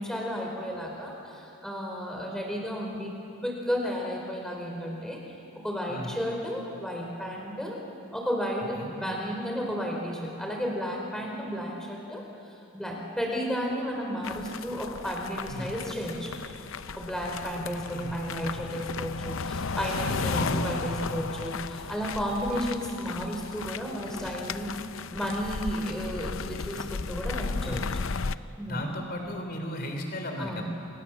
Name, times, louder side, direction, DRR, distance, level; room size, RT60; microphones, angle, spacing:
voice 1, 0.0-3.1 3.4-5.2 5.6-7.8 8.1-12.2 12.7-16.3 16.9-24.7 25.1-27.8 28.6-28.9 30.4-30.6, equal, ahead, -1 dB, 4.7 m, -33 dB
sound 1, 14.2-28.4, left 5 dB, 65° left, 0.6 m, -35 dB
voice 2, 17.5-18.2 20.0-21.2 27.7-27.9 28.7-30.6, left 1 dB, 45° left, 4 dB, 3.7 m, -36 dB
29.0 x 27.0 x 7.4 m, 2.7 s
head